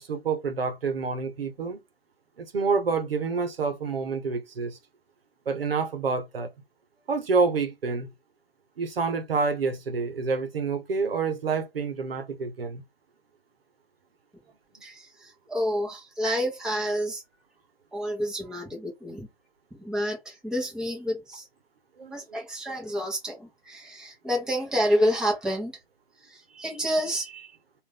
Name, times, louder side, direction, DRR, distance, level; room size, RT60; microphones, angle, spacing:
voice 1, 0.0-1.8 2.4-4.8 5.5-6.5 7.1-8.1 8.8-12.8 22.0-22.4, right 4 dB, 70° right, 1.0 m, -28 dB
voice 2, 14.8-17.2 17.9-19.3 19.7-21.5 22.1-25.7 26.2-27.6, equal, ahead, 1.0 m, -29 dB
3.7 x 2.6 x 3.4 m
figure-of-eight pair, 135°, 30 cm